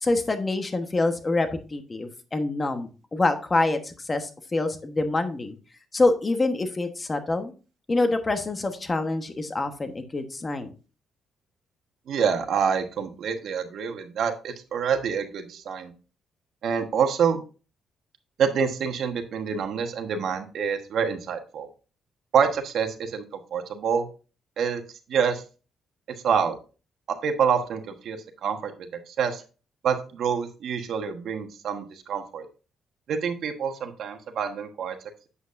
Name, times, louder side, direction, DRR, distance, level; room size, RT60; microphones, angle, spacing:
voice 1, 0.0-5.6 5.9-7.5 7.9-10.7, left 2 dB, 25° left, 7 dB, 1.2 m, -26 dB
voice 2, 12.1-15.9 16.6-17.4 18.4-21.7 22.3-23.2 23.5-24.1 24.6-24.8 25.1-25.4 26.2-26.5 27.2-28.2 28.4-29.4 29.8-32.5 33.1-34.9, right 7 dB, 70° right, 7 dB, 1.2 m, -26 dB
8.1 x 7.9 x 2.6 m, 0.34 s
cardioid pair, 90°, 0 cm